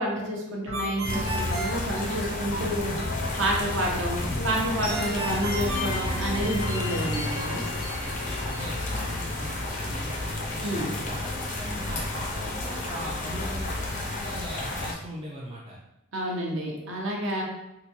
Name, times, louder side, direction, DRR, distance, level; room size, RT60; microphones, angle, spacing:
voice 1, 0.0-2.9 3.4-7.6 10.6-10.9 16.1-17.4, right 1 dB, 60° right, -1 dB, 0.8 m, -29 dB
sound 1, 0.7-10.4, left 2 dB, 85° left, 0.7 m, -37 dB
Ringtone, 0.7-2.6 4.9-6.8, right 1 dB, 90° right, 0.8 m, -34 dB
sound 2, 1.0-14.9, left 2 dB, 35° left, 0.4 m, -31 dB
voice 2, 8.0-11.3 11.7-15.8, equal, 25° right, -5 dB, 0.4 m, -40 dB
3.8 x 2.2 x 2.9 m, 0.94 s
head